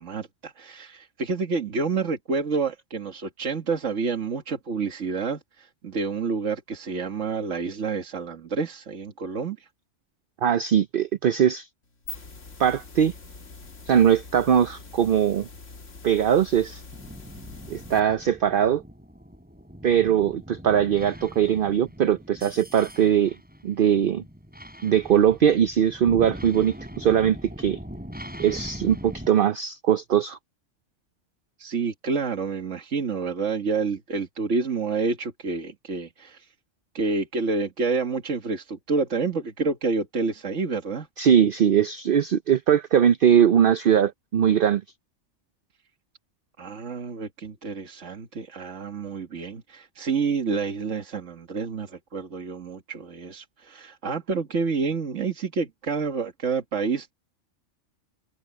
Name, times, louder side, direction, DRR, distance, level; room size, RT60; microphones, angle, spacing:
voice 1, 0.0-9.7 31.6-36.5 36.9-41.1 46.6-57.1, right 4 dB, 80° right, 2.0 m, -28 dB
voice 2, 10.4-11.7 12.6-13.1 13.9-15.5 16.0-16.8 17.7-18.8 19.8-23.4 23.6-24.2 24.8-27.8 28.4-30.4 41.2-44.8, right 9 dB, 55° right, 0.7 m, -21 dB
sound 1, 11.8-18.0, left 3 dB, 80° left, 2.3 m, -44 dB
sound 2, 16.9-29.3, equal, 5° right, 6.0 m, -41 dB
omnidirectional pair, 1.3 m